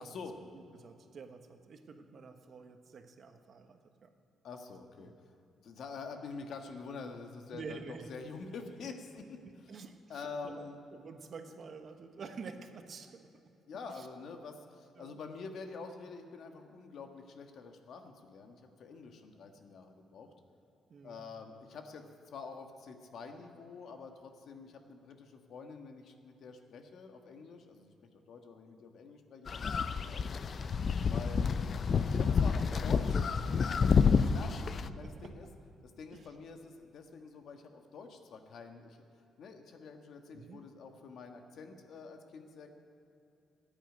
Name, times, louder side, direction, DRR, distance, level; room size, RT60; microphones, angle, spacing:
voice 1, 0.0-0.4 4.4-5.1 5.6-9.4 10.1-10.8 13.7-20.3 21.0-22.0 22.3-30.3 31.1-31.6 32.1-33.2 34.2-34.5 34.9-35.5 35.8-39.0 39.4-42.7, left 4 dB, 65° left, 5 dB, 1.5 m, -47 dB
voice 2, 0.5-4.1 5.0-5.1 7.5-8.1 9.4-13.3 13.9-14.1 14.9-15.2 20.9-21.2 30.2-30.3 31.0-31.3 32.4-34.5 34.9-35.3 36.1-36.3 40.3-40.6, right 5 dB, 50° right, 6 dB, 1.2 m, -49 dB
sound 1, 29.5-34.9, left 6 dB, 50° left, 0.5 m, -29 dB
13.5 x 9.0 x 9.1 m, 2.8 s
cardioid pair, 90°, 0 cm